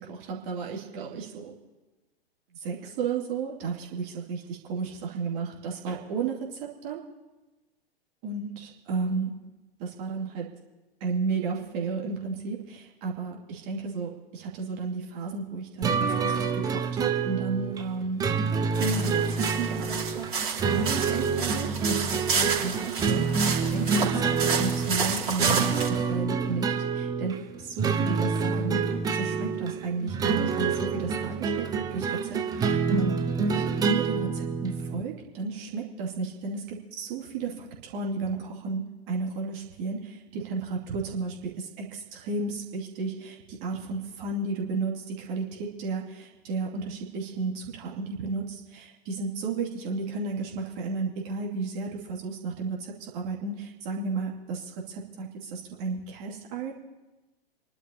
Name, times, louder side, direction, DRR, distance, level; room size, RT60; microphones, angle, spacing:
voice 1, 0.0-1.5 2.6-7.0 8.2-9.3 9.8-10.5 11.0-18.2 18.8-25.8 26.1-28.8 29.1-33.1 33.5-36.6 36.9-56.7, right 4 dB, 35° right, -2 dB, 2.5 m, -33 dB
sound 1, 15.8-35.0, right 5 dB, 10° right, 0.7 m, -27 dB
sound 2, 18.7-25.9, right 5 dB, 55° right, 3.4 m, -30 dB
28.0 x 11.5 x 2.9 m, 1.2 s
figure-of-eight pair, 105°, 30 cm